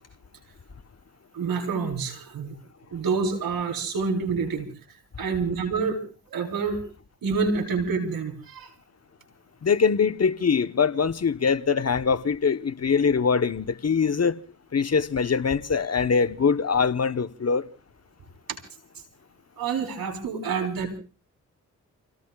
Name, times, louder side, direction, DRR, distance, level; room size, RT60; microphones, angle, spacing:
voice 1, 1.3-2.6 2.9-4.7 5.2-6.0 6.3-6.8 7.2-8.7 19.6-21.0, right 5 dB, 75° right, 4.2 m, -27 dB
voice 2, 9.6-14.4 14.7-17.7, left 5 dB, 45° left, 1.2 m, -23 dB
30.0 x 17.5 x 2.4 m
supercardioid pair, 45°, 35 cm